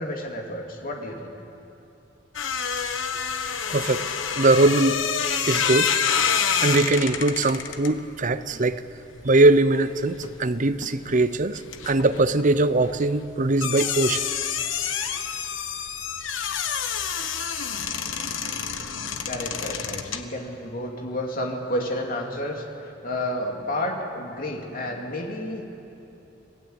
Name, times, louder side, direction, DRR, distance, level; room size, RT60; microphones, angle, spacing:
voice 1, 0.0-1.3 8.5-8.6 19.2-25.6, left 1 dB, 45° left, 2.8 m, -31 dB
sound 1, 2.3-10.5 10.7-20.2, left 7 dB, 80° left, 1.3 m, -28 dB
voice 2, 3.7-4.0 4.4-5.0 5.5-5.9 6.6-8.8 9.2-14.2, right 2 dB, 40° right, 0.7 m, -21 dB
26.5 x 18.0 x 8.1 m
head